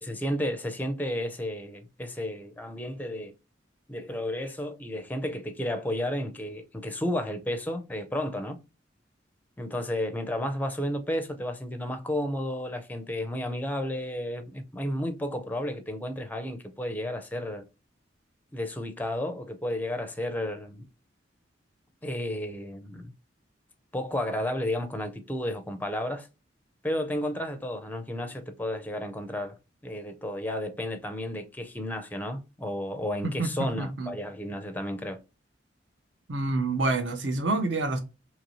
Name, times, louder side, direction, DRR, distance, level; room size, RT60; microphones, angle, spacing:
voice 1, 0.0-3.4 3.9-8.6 9.6-17.6 18.5-20.8 22.0-23.1 23.9-26.3 26.8-29.5 29.8-35.2, left 1 dB, 10° left, 0.5 m, -32 dB
voice 2, 33.2-34.1 36.3-38.0, right 2 dB, 70° right, 0.7 m, -28 dB
2.9 x 2.6 x 2.9 m
head